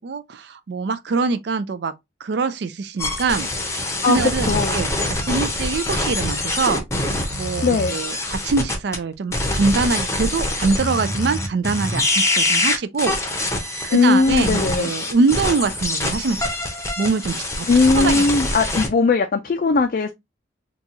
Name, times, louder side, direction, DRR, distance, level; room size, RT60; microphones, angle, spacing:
voice 1, 0.0-1.9 2.2-6.8 7.3-13.2 13.5-16.4 17.0-17.7 17.9-18.2, right 4 dB, 60° right, 0.4 m, -24 dB
sound 1, 3.0-9.0 9.3-18.9, left 1 dB, 15° left, 0.7 m, -24 dB
voice 2, 4.4-4.8 7.6-8.0 13.9-14.9 17.7-20.1, left 4 dB, 45° left, 0.4 m, -18 dB
3.9 x 2.3 x 2.8 m
head